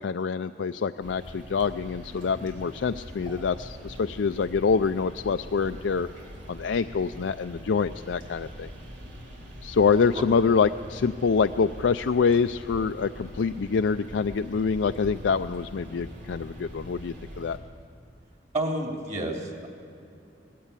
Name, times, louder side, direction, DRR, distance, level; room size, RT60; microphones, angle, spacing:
voice 1, 0.0-6.1 6.5-8.7 9.6-17.6, left 5 dB, 85° left, 9 dB, 0.4 m, -26 dB
sound 1, 1.0-17.6, equal, 85° right, 3.6 m, -43 dB
voice 2, 18.5-19.7, right 1 dB, 40° right, 1 dB, 3.0 m, -30 dB
19.0 x 16.0 x 8.4 m, 2.7 s
head